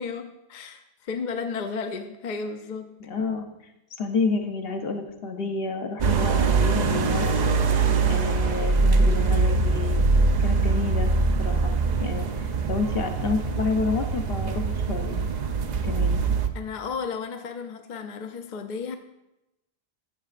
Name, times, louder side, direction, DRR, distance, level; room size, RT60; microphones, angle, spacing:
voice 1, 0.0-2.9 16.5-19.0, left 5 dB, 55° left, 6 dB, 0.7 m, -33 dB
voice 2, 3.0-3.5 4.0-7.4 8.1-10.0 10.4-11.1 11.4-11.7 12.0-12.3 12.7-15.3 15.8-16.2, left 4 dB, 70° left, 4 dB, 1.0 m, -29 dB
sound 1, 6.0-16.5, right 4 dB, 55° right, 0.6 m, -23 dB
12.5 x 7.4 x 2.5 m, 0.91 s
omnidirectional pair, 1.0 m